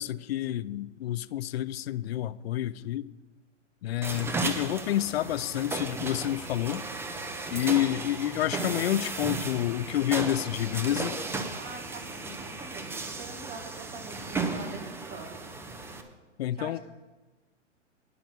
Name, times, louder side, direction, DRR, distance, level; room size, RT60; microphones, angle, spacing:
voice 1, 0.0-3.1 3.8-6.8 7.5-11.2 16.4-16.8, left 13 dB, 55° left, 0.5 m, -29 dB
sound 1, 4.0-16.0, right 3 dB, 5° right, 0.7 m, -35 dB
voice 2, 11.6-15.4 16.5-16.8, right 3 dB, 25° right, 1.8 m, -44 dB
10.5 x 6.0 x 7.9 m
hypercardioid pair, 120°, 37 cm